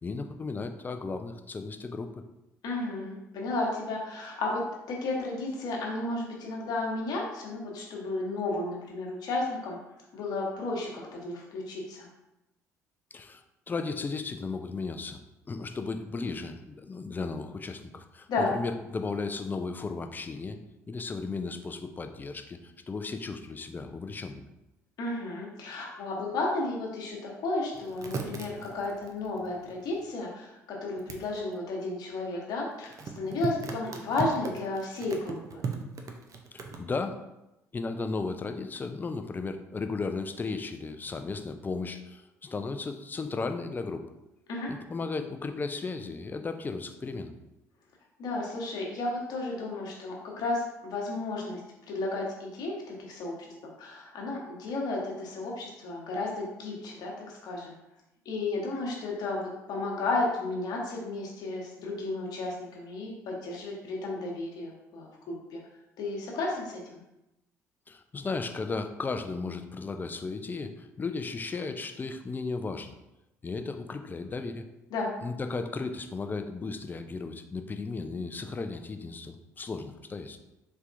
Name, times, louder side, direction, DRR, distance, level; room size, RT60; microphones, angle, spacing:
voice 1, 0.0-2.2 13.1-15.2 15.5-20.6 20.9-24.4 36.5-37.2 37.7-44.0 44.7-47.3 67.9-73.0 73.4-74.7 75.2-80.4, left 4 dB, 25° left, 7 dB, 0.4 m, -35 dB
voice 2, 2.6-4.6 4.9-9.8 10.1-12.1 18.3-18.5 25.0-32.9 33.2-35.7 44.5-44.7 48.2-51.6 51.9-53.4 53.6-57.8 58.2-65.6 66.0-67.0 74.9-75.1, left 2 dB, 55° left, -2 dB, 1.1 m, -33 dB
sound 1, 27.7-30.1 31.0-31.2 32.9-36.8, right 5 dB, 45° right, 0.6 m, -38 dB
4.2 x 3.4 x 2.5 m, 0.93 s
hypercardioid pair, 55°, 8 cm